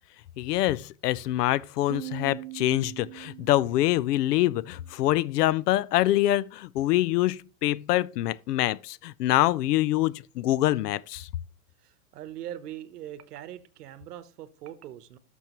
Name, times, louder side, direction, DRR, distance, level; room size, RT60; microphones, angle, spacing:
voice 1, 0.4-11.3, left 15 dB, 85° left, 0.6 m, -25 dB
Piano, 1.9-5.3, right 17 dB, 40° right, 0.6 m, -42 dB
voice 2, 11.8-15.2, right 11 dB, 80° right, 1.1 m, -41 dB
12.0 x 6.2 x 3.0 m
supercardioid pair, 170°, 46 cm